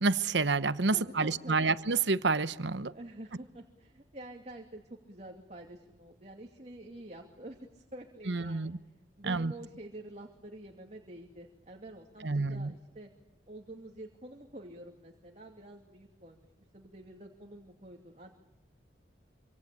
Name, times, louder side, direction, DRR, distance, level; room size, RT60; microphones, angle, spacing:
voice 1, 0.0-2.9 8.3-8.8 9.3-9.5 12.2-12.7, right 4 dB, 75° right, 1.0 m, -29 dB
voice 2, 0.9-1.8 2.9-8.7 9.2-13.1 13.5-16.5 16.7-18.3, right 1 dB, 35° right, 2.7 m, -48 dB
26.5 x 26.0 x 8.6 m
head